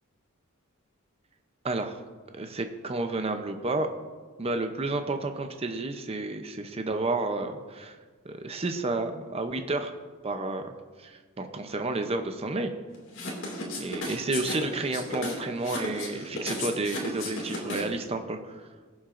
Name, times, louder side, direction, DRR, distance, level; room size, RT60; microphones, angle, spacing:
voice 1, 1.6-2.0 2.3-3.9 4.4-8.0 8.2-9.9 10.2-10.7 11.0-12.7 13.8-18.6, right 2 dB, 30° right, 6 dB, 0.6 m, -31 dB
sound 1, 13.1-18.0, left 2 dB, 60° left, 2.3 m, -34 dB
21.5 x 7.2 x 2.6 m, 1.4 s
head